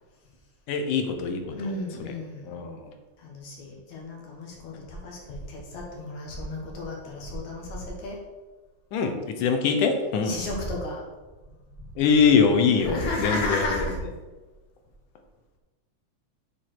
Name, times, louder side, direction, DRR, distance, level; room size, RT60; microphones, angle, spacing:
voice 1, 0.7-1.7 2.0-2.1 2.5-2.9 8.9-10.4 12.0-13.9, left 5 dB, 85° left, 5 dB, 2.5 m, -23 dB
voice 2, 1.5-2.7 3.2-8.2 10.2-11.0 12.8-14.0, left 2 dB, 70° left, -1 dB, 2.9 m, -33 dB
7.4 x 4.9 x 6.0 m, 1.2 s
omnidirectional pair, 3.5 m